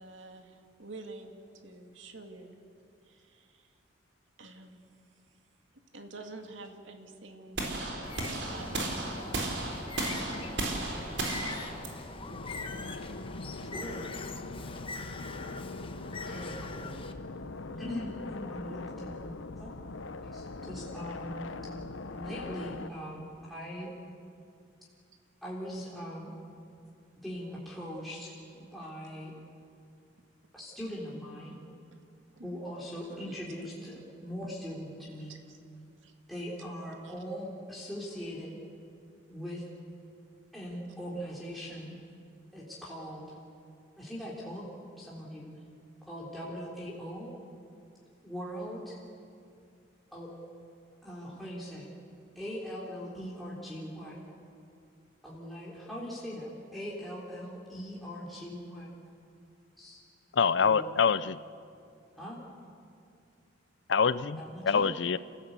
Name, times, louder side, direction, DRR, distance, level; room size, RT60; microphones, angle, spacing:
voice 1, 0.0-2.6 3.0-3.7 4.4-4.9 5.9-7.6 7.9-8.8 10.3-11.2 28.8-28.9 32.4-32.6 33.1-33.4 35.3-35.6 36.0-36.1 37.0-37.1, right 3 dB, 80° right, 5 dB, 2.1 m, -48 dB
sound 1, 7.6-13.6, right 2 dB, 65° right, 4.0 m, -35 dB
Bird, 8.0-17.1, left 3 dB, 30° left, 1.1 m, -42 dB
sound 2, 12.3-22.9, left 3 dB, 90° left, 1.0 m, -41 dB
voice 2, 13.7-14.0 16.2-17.0 17.8-19.2 19.6-19.7 20.3-21.3 22.1-23.9 25.4-26.3 27.2-29.3 30.5-31.6 32.4-35.3 36.3-38.5 39.3-39.6 40.5-42.0 42.5-43.2 44.0-44.7 45.0-45.5 46.1-47.3 48.2-49.0 50.1-50.3 51.0-51.9 52.4-54.2 55.2-58.9 59.8-60.0 60.6-60.9 62.2-62.4 64.4-64.9, equal, ahead, -7 dB, 3.7 m, -40 dB
voice 3, 60.3-61.4 63.9-65.2, left 6 dB, 65° left, 16 dB, 0.5 m, -25 dB
29.5 x 15.5 x 8.2 m, 2.4 s
head